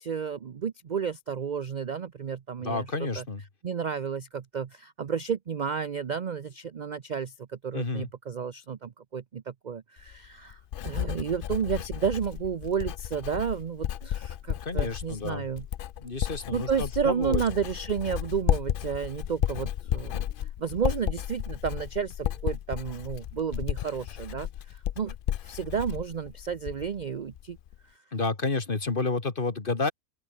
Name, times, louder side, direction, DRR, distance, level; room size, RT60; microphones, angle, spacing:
voice 1, 0.0-3.2 3.6-15.7 16.5-20.3 20.6-25.1 25.4-27.6, right 7 dB, 45° right, 0.6 m, -32 dB
voice 2, 2.6-3.4 7.7-8.1 14.6-15.5 16.0-17.4 28.1-29.9, left 3 dB, 40° left, 2.1 m, -30 dB
Writing, 10.0-27.0 27.3-27.8, left 11 dB, 75° left, 0.5 m, -33 dB
open air
omnidirectional pair, 1.5 m